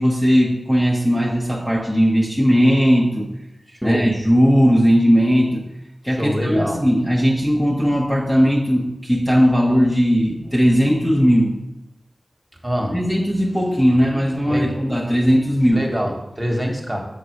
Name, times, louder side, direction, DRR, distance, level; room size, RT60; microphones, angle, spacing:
voice 1, 0.0-3.3 3.8-5.6 6.0-11.6 12.9-15.8, equal, 10° left, -3 dB, 1.1 m, -17 dB
voice 2, 3.7-4.1 6.1-6.8 12.6-13.0 14.5-14.8 15.7-17.1, equal, 15° right, 0 dB, 1.5 m, -24 dB
7.0 x 4.3 x 6.4 m, 0.89 s
wide cardioid pair, 85°, 0 cm